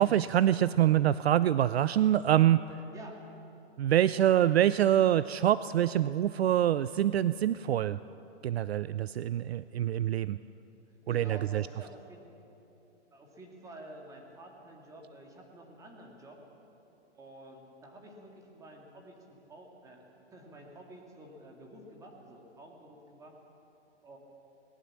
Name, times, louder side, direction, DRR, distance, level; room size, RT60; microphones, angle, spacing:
voice 1, 0.0-2.6 3.8-8.0 8.4-10.4 11.1-11.6, right 11 dB, 60° right, 16 dB, 0.5 m, -25 dB
voice 2, 10.9-12.3 13.1-16.4 17.1-23.4 24.0-24.2, right 1 dB, 10° right, 1 dB, 2.1 m, -50 dB
20.5 x 19.0 x 7.4 m, 2.9 s
hypercardioid pair, 155°, 35 cm